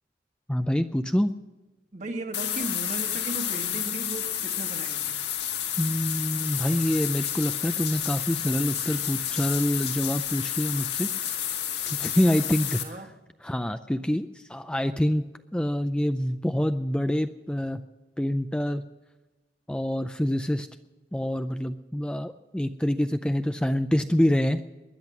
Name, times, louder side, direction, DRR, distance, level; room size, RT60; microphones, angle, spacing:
voice 1, 0.5-1.3 5.8-11.1 11.9-12.8 13.4-15.3 15.5-17.8 18.2-18.8 19.7-20.7 21.1-24.6, equal, 5° left, 0.4 m, -26 dB
voice 2, 1.9-5.2 12.5-13.2, right 2 dB, 40° right, 1.5 m, -36 dB
sound 1, 2.3-12.8, left 10 dB, 65° left, 2.2 m, -30 dB
20.0 x 10.5 x 6.0 m
head